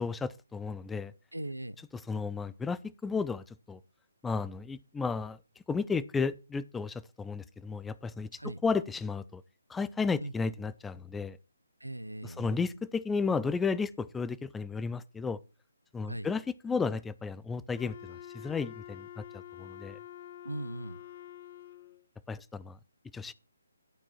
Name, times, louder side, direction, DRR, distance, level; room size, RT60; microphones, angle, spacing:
voice 1, 0.0-1.1 1.9-3.8 4.2-5.4 5.7-9.4 9.7-11.4 12.2-15.4 15.9-20.0 22.3-22.8 23.1-23.3, left 5 dB, 5° left, 0.4 m, -33 dB
voice 2, 1.3-1.8 8.4-8.6 10.2-10.3 11.8-12.6 16.1-16.3 20.4-21.0, right 1 dB, 90° right, 0.5 m, -39 dB
Wind instrument woodwind instrument, 17.7-22.0, left 11 dB, 40° left, 0.8 m, -47 dB
11.5 x 6.0 x 4.3 m
figure-of-eight pair, 140°, 0 cm